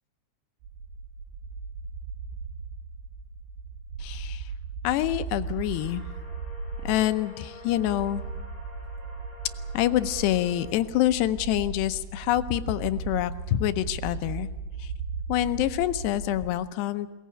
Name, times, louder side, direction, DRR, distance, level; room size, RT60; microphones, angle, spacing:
sound 1, 0.6-16.5, right 4 dB, 70° right, 3.7 m, -37 dB
voice 1, 4.0-4.5 4.8-6.1 6.8-8.2 9.7-14.5 14.8-14.9 15.3-17.1, left 14 dB, 85° left, 11 dB, 2.9 m, -26 dB
sound 2, 5.4-10.7, left 2 dB, 10° right, 7.6 m, -48 dB
22.5 x 18.5 x 8.6 m, 1.2 s
omnidirectional pair, 4.7 m